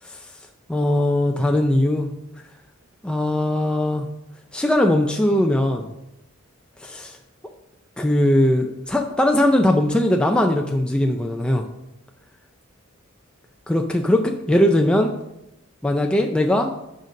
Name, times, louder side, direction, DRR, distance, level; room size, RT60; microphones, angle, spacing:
voice 1, 0.7-2.1 3.0-4.1 4.5-5.9 6.8-7.2 8.0-11.7 13.7-15.1 15.8-16.7, left 1 dB, 5° left, 2 dB, 0.4 m, -20 dB
6.5 x 5.2 x 5.1 m, 0.88 s
head